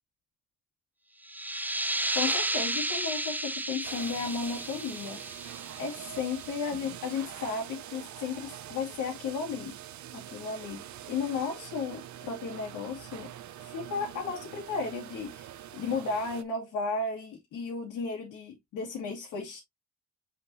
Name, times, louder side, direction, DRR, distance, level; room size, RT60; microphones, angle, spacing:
sound 1, 1.2-6.6, right 1 dB, 5° right, 0.6 m, -33 dB
voice 1, 2.1-5.2 5.8-13.3 13.6-19.6, left 4 dB, 85° left, 2.5 m, -34 dB
sound 2, 3.8-16.4, right 11 dB, 70° right, 0.9 m, -44 dB
6.6 x 5.2 x 2.8 m
cardioid pair, 90°, 30 cm